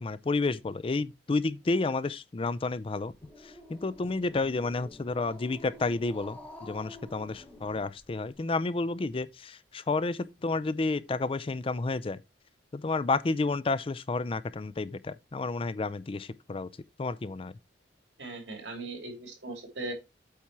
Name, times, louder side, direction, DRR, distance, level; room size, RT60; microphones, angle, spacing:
voice 1, 0.0-3.1 3.7-12.2 12.7-16.7 17.0-17.5, left 3 dB, 30° left, 0.4 m, -30 dB
Growling, 3.1-8.3, left 1 dB, 10° left, 2.3 m, -49 dB
voice 2, 18.2-19.9, right 2 dB, 80° right, 3.0 m, -39 dB
8.4 x 4.3 x 4.6 m
head